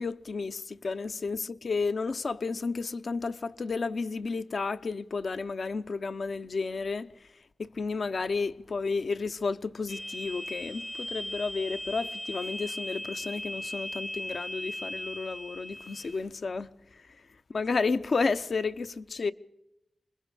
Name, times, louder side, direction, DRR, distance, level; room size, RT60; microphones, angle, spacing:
voice 1, 0.0-7.3 7.6-17.0 17.5-19.3, left 4 dB, 75° left, 0.8 m, -32 dB
sound 1, 9.9-16.2, left 1 dB, 15° left, 0.6 m, -38 dB
26.0 x 21.5 x 5.0 m
cardioid pair, 50°, 0 cm